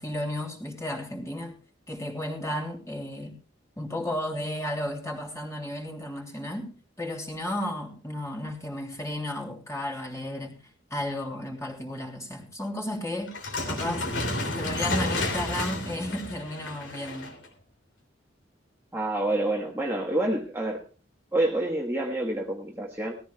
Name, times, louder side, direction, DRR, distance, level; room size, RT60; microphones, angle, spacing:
voice 1, 0.0-1.5 1.9-3.4 3.8-10.6 10.9-13.3 13.7-14.1 14.4-17.3, left 1 dB, 15° left, 0 dB, 3.2 m, -33 dB
sound 1, 13.3-17.5, left 2 dB, 75° left, 3.1 m, -31 dB
voice 2, 18.9-20.8 21.3-23.1, right 1 dB, 15° right, -1 dB, 1.4 m, -27 dB
19.0 x 14.0 x 2.3 m, 0.34 s
head